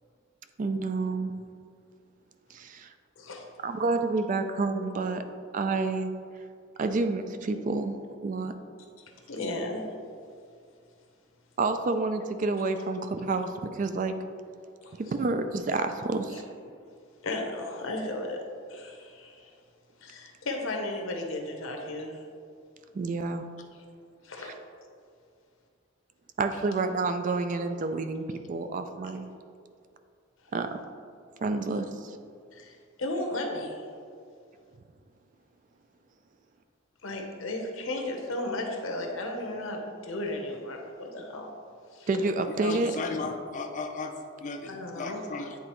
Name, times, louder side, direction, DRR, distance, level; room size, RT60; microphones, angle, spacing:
voice 1, 0.6-1.3 2.5-2.9 3.6-5.2 5.5-6.1 6.8-8.0 8.2-8.6 11.6-14.1 15.0-16.4 22.9-23.5 24.4-24.5 26.4-29.3 30.5-30.7 31.4-32.2 42.1-42.9 43.2-43.3, right 3 dB, 40° right, 8 dB, 0.3 m, -29 dB
voice 2, 9.3-9.8 14.8-14.9 16.3-16.4 17.2-18.4 18.7-19.5 20.0-22.2 24.2-24.5 32.5-33.9 37.0-41.5 41.9-42.1 44.7-45.2, left 2 dB, 80° left, 2 dB, 0.9 m, -34 dB
voice 3, 42.6-44.1 44.4-45.6, left 3 dB, 35° left, 3 dB, 0.4 m, -35 dB
9.4 x 3.8 x 3.1 m, 2.3 s
head